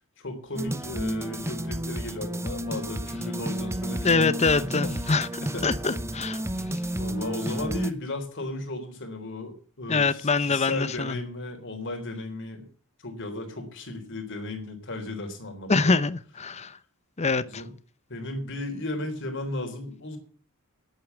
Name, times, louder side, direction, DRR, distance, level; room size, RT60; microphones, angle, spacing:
voice 1, 0.2-5.0 5.4-5.8 7.0-12.7 13.0-16.0 17.4-17.7 18.1-20.2, left 2 dB, 60° left, 3.7 m, -35 dB
sound 1, 0.6-7.9, right 1 dB, 10° right, 0.8 m, -32 dB
voice 2, 4.0-5.3 5.6-6.4 9.9-11.2 15.7-16.8 17.2-17.6, left 4 dB, 30° left, 0.8 m, -24 dB
10.5 x 8.5 x 9.2 m
head